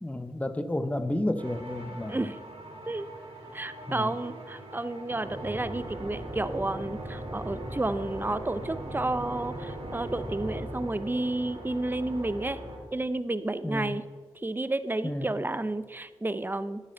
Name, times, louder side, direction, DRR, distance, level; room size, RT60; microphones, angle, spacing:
voice 1, 0.0-2.3 3.9-4.1 13.6-14.0 15.0-15.3, left 1 dB, 15° left, 11 dB, 0.8 m, -31 dB
sound 1, 1.4-12.8, right 1 dB, 65° right, 3.2 m, -39 dB
voice 2, 3.5-12.6 12.9-14.0 14.3-16.8, right 2 dB, 20° right, 13 dB, 0.7 m, -31 dB
11.0 x 7.0 x 6.9 m, 1.4 s
cardioid pair, 45°, 11 cm